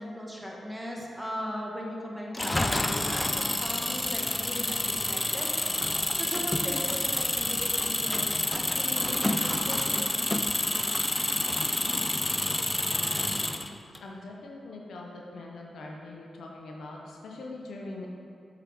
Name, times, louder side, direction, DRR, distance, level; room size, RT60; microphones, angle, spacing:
voice 1, 0.0-5.5 5.9-10.2, equal, ahead, -3 dB, 1.3 m, -38 dB
Engine, 2.3-14.0, left 1 dB, 20° left, 0.4 m, -28 dB
voice 2, 14.0-18.1, left 2 dB, 75° left, -1 dB, 0.6 m, -42 dB
7.3 x 3.8 x 3.4 m, 2.3 s
supercardioid pair, 40°, 0 cm